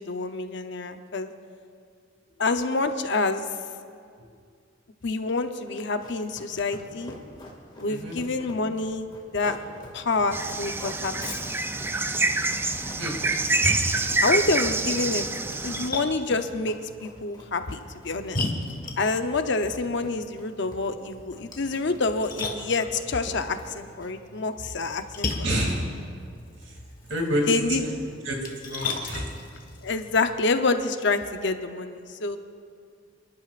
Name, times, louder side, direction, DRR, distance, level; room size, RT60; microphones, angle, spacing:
voice 1, 0.0-1.3 2.4-3.5 5.0-7.2 7.8-9.6 9.9-11.3 14.2-15.2 15.6-17.8 18.0-18.4 19.0-25.5 27.5-27.8 29.8-32.4, left 3 dB, 65° left, 8 dB, 0.8 m, -27 dB
Run, 5.7-24.3, left 1 dB, 25° left, 2.1 m, -45 dB
sound 1, 10.3-15.9, right 3 dB, 10° right, 0.4 m, -26 dB
Splash splatter, 13.2-30.3, left 2 dB, 45° left, 1.5 m, -37 dB
voice 2, 25.4-25.8 27.1-27.5 27.8-27.9 28.2-28.4 28.6-29.3, equal, 80° right, 0 dB, 2.7 m, -28 dB
29.5 x 11.5 x 2.5 m, 2.2 s
head